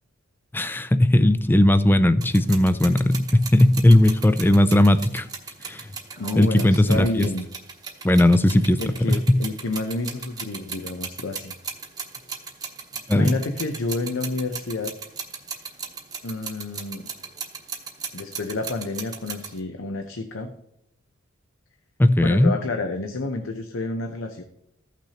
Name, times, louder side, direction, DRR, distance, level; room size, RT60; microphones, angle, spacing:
voice 1, 0.5-5.3 5.6-5.8 6.4-7.3 8.0-8.8 9.3-9.4 13.1-13.4 22.0-22.5, left 1 dB, 10° left, 12 dB, 0.3 m, -17 dB
sound 1, 2.2-19.6, right 5 dB, 20° right, 0.9 m, -37 dB
voice 2, 6.2-7.5 8.5-11.5 13.1-14.9 16.2-17.1 18.1-20.5 22.2-24.4, left 2 dB, 65° left, 5 dB, 0.7 m, -29 dB
14.5 x 6.0 x 2.9 m, 0.78 s
head